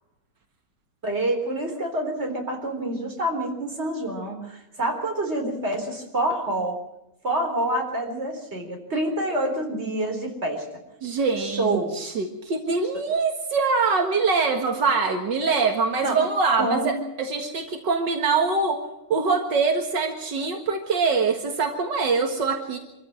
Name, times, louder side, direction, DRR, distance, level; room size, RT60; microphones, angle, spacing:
voice 1, 1.0-6.8 7.2-10.6 11.4-12.1 16.0-16.2 16.6-16.9, right 1 dB, 35° right, 2 dB, 4.3 m, -27 dB
voice 2, 11.0-18.8 19.1-22.8, right 4 dB, 80° right, 4 dB, 2.4 m, -24 dB
25.5 x 14.5 x 7.5 m, 0.93 s
omnidirectional pair, 1.9 m